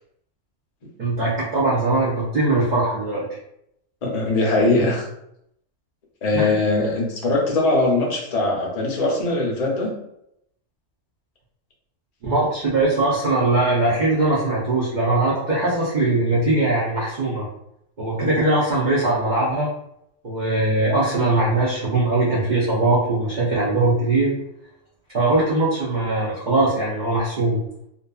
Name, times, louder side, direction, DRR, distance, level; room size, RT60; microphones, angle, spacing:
voice 1, 1.0-3.3 6.3-6.6 12.2-17.5 18.0-19.7 20.2-24.3 25.1-27.6, right 2 dB, 50° right, -7 dB, 0.5 m, -21 dB
voice 2, 4.0-5.1 6.2-9.9, left 2 dB, 55° left, -2 dB, 0.4 m, -21 dB
2.6 x 2.4 x 2.3 m, 0.76 s
omnidirectional pair, 1.5 m